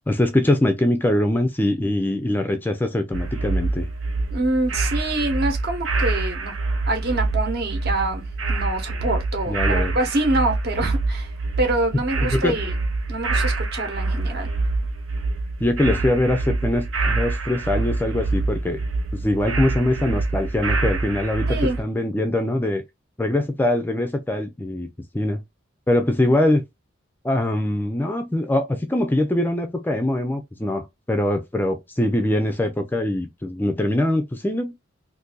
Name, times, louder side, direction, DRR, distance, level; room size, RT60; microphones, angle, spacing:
voice 1, 0.1-3.9 9.5-9.9 12.2-12.6 15.6-18.8 19.1-22.8 23.2-24.9 25.1-25.4 25.9-26.6 27.2-34.7, left 1 dB, 10° left, 0.3 m, -22 dB
sound 1, 3.1-21.8, right 3 dB, 80° right, 0.7 m, -25 dB
voice 2, 4.3-6.5 6.9-11.3 11.6-12.7 13.1-14.5 21.5-21.8, right 2 dB, 55° right, 1.0 m, -25 dB
2.6 x 2.6 x 3.7 m
head